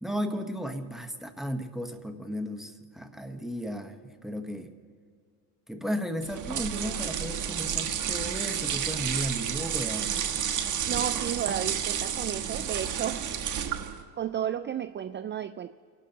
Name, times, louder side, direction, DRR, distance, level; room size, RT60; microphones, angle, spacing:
voice 1, 0.0-4.7 5.7-10.1, equal, ahead, 6 dB, 1.0 m, -34 dB
sound 1, 6.2-14.0, right 8 dB, 50° right, 1.2 m, -31 dB
voice 2, 10.8-13.3 14.1-15.7, right 9 dB, 30° right, 11 dB, 0.4 m, -33 dB
29.5 x 12.0 x 2.8 m, 2.1 s
cardioid pair, 100°, 39 cm